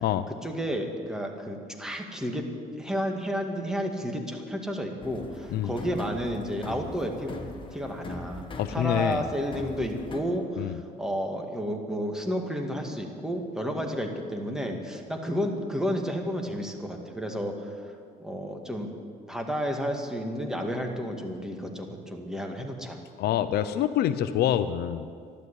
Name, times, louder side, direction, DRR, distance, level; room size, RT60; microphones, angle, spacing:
voice 1, 0.3-2.5 2.8-7.3 7.7-17.5 18.2-18.9 19.3-23.0, equal, 5° right, 2 dB, 2.0 m, -31 dB
sound 1, 5.0-10.2, left 2 dB, 30° left, 1.7 m, -41 dB
voice 2, 8.6-9.2 10.6-10.8 23.2-25.1, left 11 dB, 70° left, 12 dB, 0.7 m, -26 dB
12.5 x 12.0 x 8.3 m, 2.2 s
cardioid pair, 110°, 17 cm